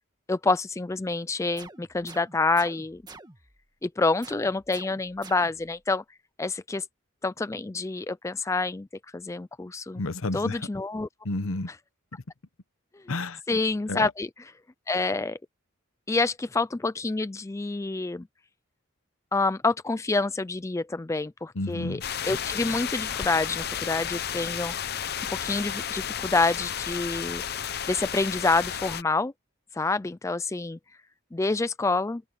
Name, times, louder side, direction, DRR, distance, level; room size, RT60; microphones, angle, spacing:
voice 1, 0.3-3.0 3.8-6.0 6.4-6.9 7.2-8.9 9.1-10.0 10.3-11.1 13.5-14.3 14.9-15.4 16.1-18.3 19.3-25.0 25.4-27.4 27.9-29.3 29.7-30.8 31.3-32.2, left 3 dB, 15° left, 0.3 m, -27 dB
sound 1, 1.6-3.6 4.2-5.8, right 3 dB, 20° right, 1.7 m, -48 dB
voice 2, 9.9-10.7 11.2-11.7 13.1-13.4 13.9-14.1 21.5-22.0, left 2 dB, 85° left, 1.0 m, -30 dB
sound 2, 22.0-29.0, left 9 dB, 50° left, 0.8 m, -32 dB
open air
head